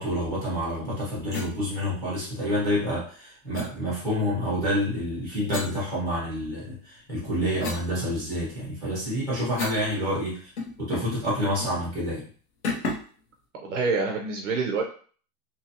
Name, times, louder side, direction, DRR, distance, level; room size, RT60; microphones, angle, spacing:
voice 1, 0.0-10.5 10.8-12.2, equal, 5° left, -6 dB, 0.7 m, -28 dB
sound 1, 1.3-1.5 3.5-3.7 5.5-6.5 7.0-9.9 10.2-10.3 10.6-11.2 11.6-11.8 12.6-13.2, left 3 dB, 45° left, 0.5 m, -35 dB
voice 2, 13.5-14.8, right 4 dB, 50° right, 1 dB, 0.5 m, -26 dB
2.7 x 2.5 x 2.6 m, 0.43 s
supercardioid pair, 175°, 49 cm